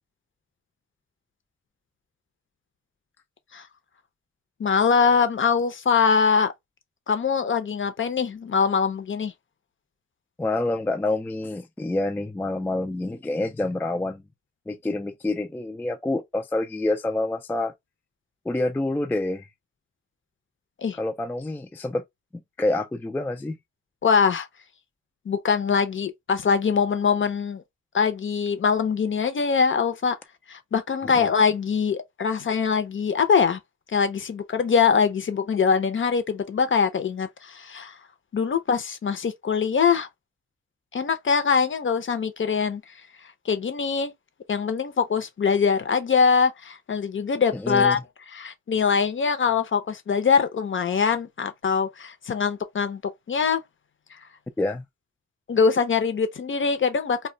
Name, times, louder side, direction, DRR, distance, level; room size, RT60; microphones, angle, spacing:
voice 1, 4.6-6.5 7.1-9.3 20.8-21.0 24.0-24.5 25.3-27.6 27.9-30.2 30.5-33.6 33.9-38.0 38.3-40.1 40.9-42.9 43.4-44.1 44.5-48.0 48.3-53.0 53.3-53.6 54.1-54.2 55.5-57.3, left 6 dB, 45° left, 0.6 m, -23 dB
voice 2, 10.4-14.2 14.7-17.7 18.5-19.5 21.0-22.0 22.6-23.6 31.0-31.3 47.5-48.0 54.6-54.8, left 2 dB, 5° left, 0.3 m, -27 dB
2.3 x 2.2 x 3.7 m
cardioid pair, 85°, 29 cm